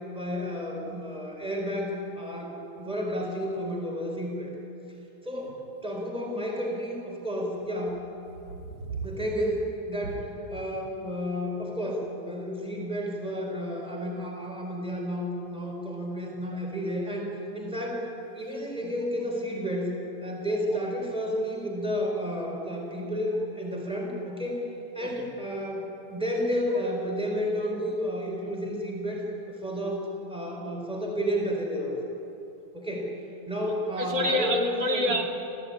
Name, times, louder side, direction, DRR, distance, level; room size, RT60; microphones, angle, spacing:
voice 1, 0.1-4.5 5.2-8.0 9.0-18.1 18.3-20.0 20.2-24.6 24.9-32.0 32.7-33.1 33.5-35.2, equal, 5° right, -1 dB, 4.2 m, -31 dB
voice 2, 8.5-9.1 25.0-25.3 33.7-35.2, equal, 90° right, 2 dB, 3.4 m, -29 dB
27.5 x 15.5 x 9.8 m, 3.0 s
omnidirectional pair, 2.0 m